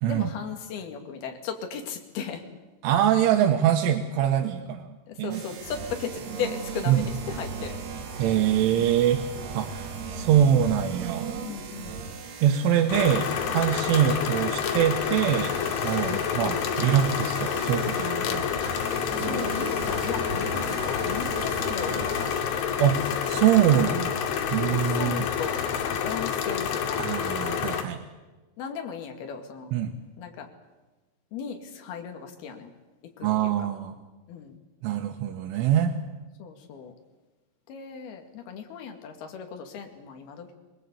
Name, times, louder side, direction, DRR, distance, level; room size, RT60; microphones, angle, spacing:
voice 1, 0.1-2.5 5.1-7.8 10.2-10.4 11.4-12.1 16.1-16.3 19.1-22.3 24.5-27.1 28.6-29.7 30.2-30.5 31.3-32.7 33.2-33.7 34.3-34.6 36.4-36.9 37.7-40.5, left 7 dB, 60° left, 4 dB, 4.0 m, -36 dB
voice 2, 2.8-5.4 6.9-7.0 8.2-9.2 9.5-11.3 12.4-15.5 15.8-18.5 22.8-25.2 27.0-28.0 29.7-29.9 33.2-33.9 34.8-35.9, right 10 dB, 85° right, 5 dB, 3.6 m, -24 dB
sound 1, 5.3-22.4, right 5 dB, 60° right, 3.7 m, -37 dB
sound 2, 12.9-27.8, left 8 dB, 80° left, 4.2 m, -28 dB
24.0 x 21.5 x 8.4 m, 1.2 s
omnidirectional pair, 5.5 m